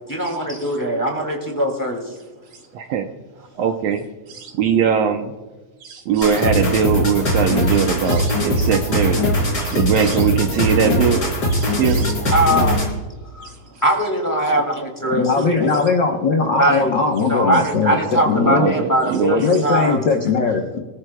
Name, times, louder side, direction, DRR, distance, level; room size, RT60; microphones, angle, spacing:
voice 1, 0.1-2.2 12.3-12.8 13.3-13.5 13.8-15.7 16.6-17.0 17.3-20.0, right 1 dB, 5° left, 1 dB, 1.9 m, -20 dB
voice 2, 2.7-3.1 3.6-5.3 5.8-9.2 9.6-11.2 11.5-12.2 13.4-13.5 18.4-19.6, right 7 dB, 70° right, 5 dB, 1.7 m, -21 dB
sound 1, 6.2-13.0, equal, 30° left, 4.2 m, -20 dB
voice 3, 15.1-18.7 19.4-20.8, left 4 dB, 55° left, 1 dB, 1.2 m, -20 dB
25.0 x 14.0 x 2.3 m, 1.2 s
omnidirectional pair, 3.5 m